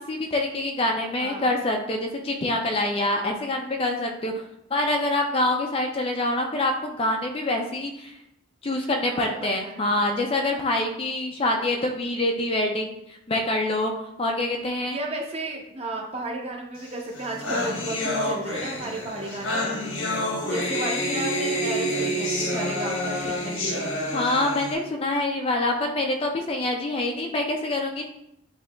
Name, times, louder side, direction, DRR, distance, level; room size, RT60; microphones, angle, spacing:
voice 1, 0.1-4.4 4.7-8.2 8.6-13.0 13.3-13.9 14.2-15.0 24.1-28.0, left 2 dB, 30° left, 2 dB, 0.4 m, -25 dB
voice 2, 1.2-1.5 9.1-10.0 14.8-19.8 20.5-24.0, right 2 dB, 30° right, -1 dB, 0.7 m, -34 dB
sound 1, 16.9-17.0 17.1-24.7, left 1 dB, 75° left, 1.0 m, -28 dB
8.3 x 2.8 x 2.2 m, 0.83 s
head